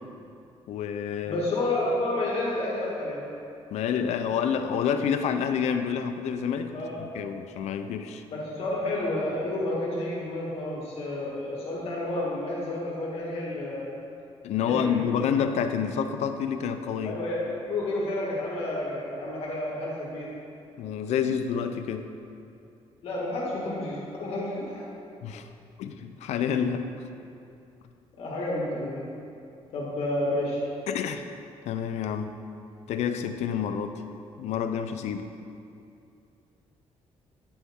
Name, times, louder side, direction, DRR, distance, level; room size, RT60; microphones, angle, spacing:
voice 1, 0.7-1.4 3.7-8.2 14.4-17.2 20.8-22.1 25.2-25.5 25.8-26.9 30.9-31.3 31.7-32.3 32.9-34.0 34.4-35.3, left 7 dB, 85° left, 8 dB, 0.5 m, -28 dB
voice 2, 1.2-3.2 6.7-7.0 8.3-13.9 14.7-15.0 17.0-20.3 23.0-24.8 28.2-29.1 29.7-30.6, left 1 dB, 60° left, -5 dB, 1.7 m, -30 dB
9.5 x 7.1 x 3.6 m, 2.6 s
cardioid pair, 165°, 11 cm